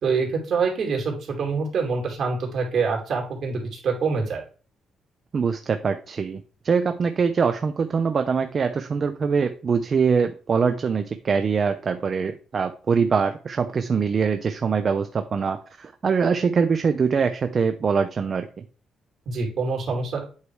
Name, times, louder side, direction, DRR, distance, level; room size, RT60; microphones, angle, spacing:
voice 1, 0.0-4.4 19.3-20.2, right 4 dB, 60° right, 1 dB, 2.8 m, -25 dB
voice 2, 5.3-18.5, right 5 dB, 45° right, 8 dB, 0.6 m, -23 dB
8.2 x 3.2 x 4.8 m, 0.38 s
cardioid pair, 90°, 0 cm